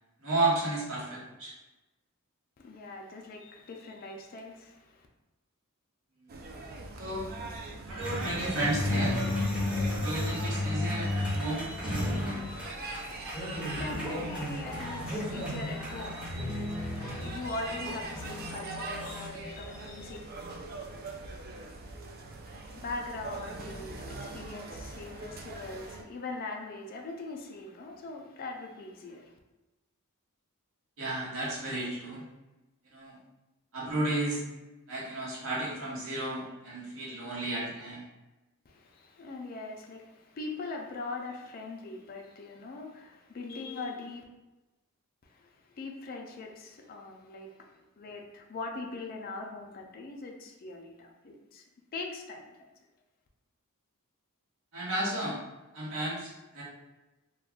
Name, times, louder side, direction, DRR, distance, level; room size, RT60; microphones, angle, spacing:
voice 1, 0.2-1.5 6.2-6.3 7.0-7.3 7.9-9.2 10.0-12.3 31.0-32.2 32.9-33.2 33.7-34.4 34.9-38.0 54.7-55.4 55.7-56.6, right 2 dB, 65° right, -6 dB, 1.0 m, -33 dB
voice 2, 2.6-5.1 13.2-20.2 22.4-29.3 38.7-44.2 45.2-51.6 51.9-52.7, left 3 dB, 40° left, 1 dB, 0.4 m, -41 dB
sound 1, 6.3-26.0, right 3 dB, 40° right, 0.3 m, -42 dB
sound 2, 8.0-19.3, left 1 dB, 5° right, 0.7 m, -33 dB
2.3 x 2.2 x 3.5 m, 1.1 s
head